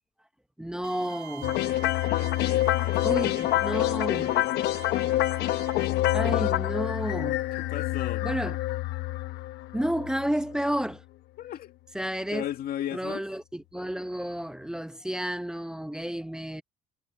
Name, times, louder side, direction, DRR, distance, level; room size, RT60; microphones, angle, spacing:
voice 1, 0.6-1.6 3.0-4.3 6.1-7.4 8.2-8.6 9.7-11.0 11.9-12.4 12.9-16.6, equal, 5° right, 0.9 m, -31 dB
Bowed string instrument, 0.8-5.9, right 11 dB, 85° right, 2.8 m, -46 dB
sound 1, 1.4-10.6, left 15 dB, 85° left, 0.9 m, -27 dB
voice 2, 2.1-3.6 4.1-4.7 7.6-8.3 11.4-11.7 12.3-13.2, left 11 dB, 60° left, 2.2 m, -37 dB
cardioid pair, 110°, 17 cm